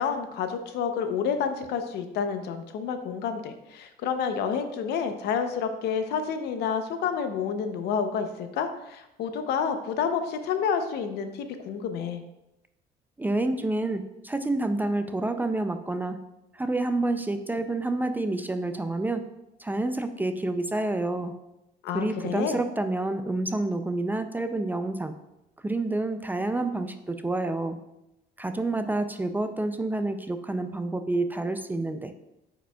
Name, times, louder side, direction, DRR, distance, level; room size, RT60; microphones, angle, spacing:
voice 1, 0.0-12.2 21.8-22.6, left 6 dB, 75° left, 8 dB, 0.7 m, -29 dB
voice 2, 13.2-16.2 16.5-19.2 19.6-21.4 21.9-25.1 25.6-27.8 28.4-32.1, right 2 dB, 10° right, 8 dB, 0.4 m, -28 dB
8.6 x 5.0 x 2.3 m, 0.92 s
cardioid pair, 110°, 17 cm